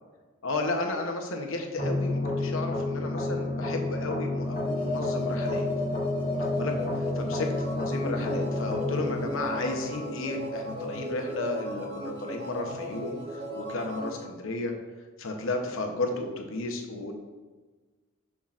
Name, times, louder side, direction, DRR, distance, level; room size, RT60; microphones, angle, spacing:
voice 1, 0.4-5.6 6.4-6.7 7.2-7.5 7.8-13.2 13.5-14.7 15.2-17.1, left 2 dB, 70° left, 3 dB, 0.9 m, -33 dB
sound 1, 1.8-10.8, left 2 dB, 40° left, 1.3 m, -31 dB
sound 2, 4.4-14.2, left 1 dB, 45° right, 1.8 m, -35 dB
7.3 x 5.8 x 2.5 m, 1.3 s
head